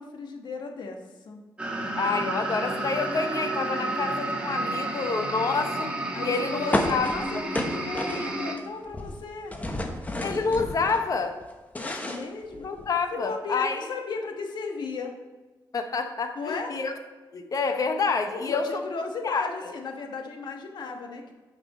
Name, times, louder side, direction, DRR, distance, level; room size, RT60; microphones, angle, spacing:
voice 1, 0.0-1.4 6.1-9.5 11.8-12.7 13.1-15.1 16.3-16.7 18.3-21.3, left 4 dB, 70° left, 3 dB, 1.3 m, -35 dB
sound 1, 1.6-8.6, right 2 dB, 15° right, 1.4 m, -31 dB
voice 2, 2.0-5.9 6.2-7.4 10.2-11.4 12.6-13.8 15.7-16.9 17.3-18.8 19.2-19.4, left 4 dB, 50° left, 6 dB, 0.9 m, -28 dB
sound 2, 6.7-8.6 8.9-11.0 11.4-13.0, left 1 dB, 20° left, 1.1 m, -31 dB
9.0 x 6.0 x 4.2 m, 1.2 s
cardioid pair, 100°, 8 cm